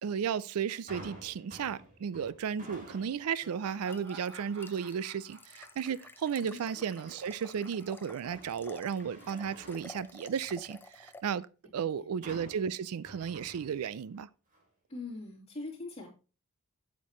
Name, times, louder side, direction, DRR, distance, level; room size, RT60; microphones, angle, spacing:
voice 1, 0.0-11.5 11.7-14.3, right 7 dB, 80° right, 0.4 m, -34 dB
sound 1, 0.9-3.4 3.9-4.3 6.7-7.4 7.8-10.7 12.2-14.2 14.5-14.6, right 1 dB, 35° right, 2.8 m, -51 dB
sound 2, 3.4-11.2, left 2 dB, 10° left, 0.5 m, -52 dB
Laughter, 3.4-8.9, right 3 dB, 60° right, 2.1 m, -53 dB
voice 2, 11.6-12.1 14.9-16.1, left 3 dB, 30° left, 3.3 m, -42 dB
8.4 x 8.3 x 3.1 m
head